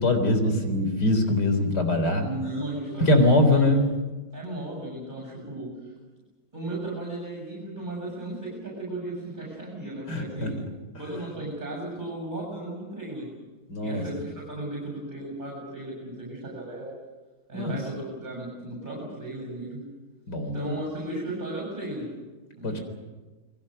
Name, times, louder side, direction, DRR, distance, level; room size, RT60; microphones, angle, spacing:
voice 1, 0.0-2.2 3.1-3.8 10.1-10.5 13.7-14.0 17.5-17.7 20.3-20.7 22.6-22.8, left 1 dB, 55° left, 7 dB, 4.4 m, -22 dB
voice 2, 2.2-3.7 4.3-5.9 6.5-10.6 11.0-13.3 13.8-16.9 17.5-19.9 20.5-22.1 22.6-22.8, right 2 dB, 20° right, -2 dB, 8.0 m, -35 dB
29.5 x 22.0 x 6.7 m, 1.2 s
omnidirectional pair, 2.2 m